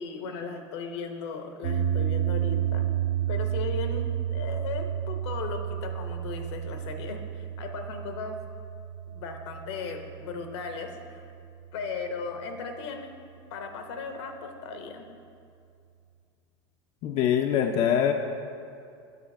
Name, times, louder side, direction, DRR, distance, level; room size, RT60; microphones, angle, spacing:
voice 1, 0.0-2.9 3.3-8.4 9.1-11.3 11.7-13.1 13.5-15.1, left 5 dB, 75° left, 5 dB, 0.9 m, -37 dB
sound 1, 1.6-11.9, right 10 dB, 70° right, 0.7 m, -31 dB
voice 2, 17.0-18.1, left 9 dB, 45° left, 4 dB, 0.4 m, -23 dB
9.5 x 4.0 x 5.3 m, 2.4 s
hypercardioid pair, 95°, 14 cm